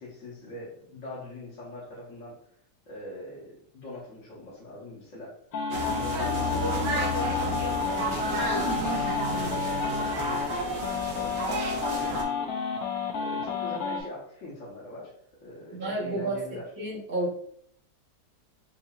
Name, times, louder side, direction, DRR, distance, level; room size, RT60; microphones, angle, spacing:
voice 1, 0.0-2.3 2.9-5.4 5.8-12.8 13.1-15.1 15.4-16.7, left 2 dB, 50° left, -8 dB, 1.4 m, -42 dB
sound 1, 5.5-14.0, left 5 dB, 65° left, 1.1 m, -30 dB
sound 2, 5.7-12.2, right 1 dB, 90° right, 1.5 m, -31 dB
voice 2, 15.7-17.3, right 2 dB, 60° right, -6 dB, 1.4 m, -31 dB
5.6 x 2.6 x 2.3 m, 0.63 s
omnidirectional pair, 1.8 m